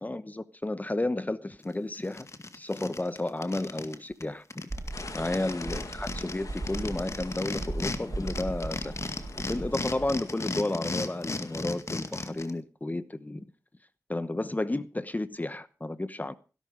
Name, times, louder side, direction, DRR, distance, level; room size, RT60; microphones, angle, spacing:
voice 1, 0.0-2.3 2.5-4.4 5.1-8.9 9.3-13.5 14.1-16.4, left 2 dB, 25° left, 1.0 m, -32 dB
sound 1, 1.6-1.7 2.0-4.0 4.2-4.3 4.5-8.0 8.3-12.5, left 3 dB, 55° left, 2.1 m, -35 dB
sound 2, 4.7-10.2, right 2 dB, 45° right, 4.4 m, -38 dB
sound 3, 4.9-11.6, left 3 dB, 70° left, 2.2 m, -46 dB
17.0 x 11.5 x 5.3 m
cardioid pair, 45°, 6 cm